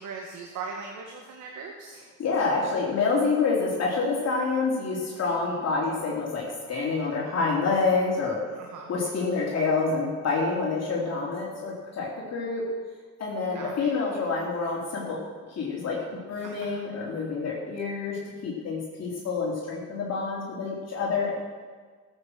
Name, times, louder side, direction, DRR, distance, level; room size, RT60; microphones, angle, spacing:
voice 1, 0.0-2.0 5.4-5.6 8.7-8.9 13.5-13.9 16.4-16.8, right 4 dB, 80° right, 1 dB, 1.7 m, -39 dB
voice 2, 2.2-8.4 8.9-12.7 13.2-15.2 15.6-16.0 16.3-21.3, left 4 dB, 55° left, -4 dB, 3.8 m, -27 dB
15.0 x 8.3 x 6.7 m, 1.5 s
cardioid pair, 90°, 30 cm